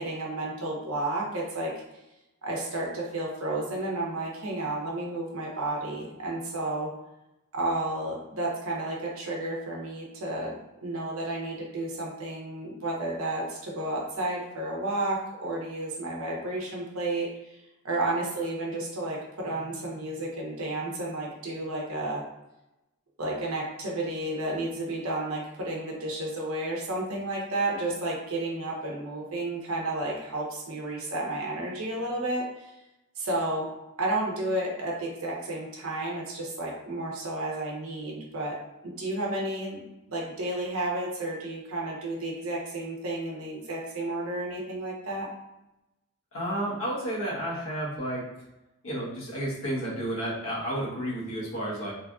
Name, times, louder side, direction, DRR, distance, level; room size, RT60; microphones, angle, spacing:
voice 1, 0.0-1.7 2.4-6.9 7.5-10.6 10.8-17.3 17.8-22.2 23.2-32.7 33.2-33.7 34.0-38.5 38.8-39.8 40.1-45.3, right 2 dB, 75° right, -3 dB, 0.8 m, -32 dB
voice 2, 46.3-48.2 48.8-51.9, right 1 dB, 70° left, -5 dB, 1.0 m, -31 dB
3.3 x 2.5 x 2.3 m, 0.94 s
head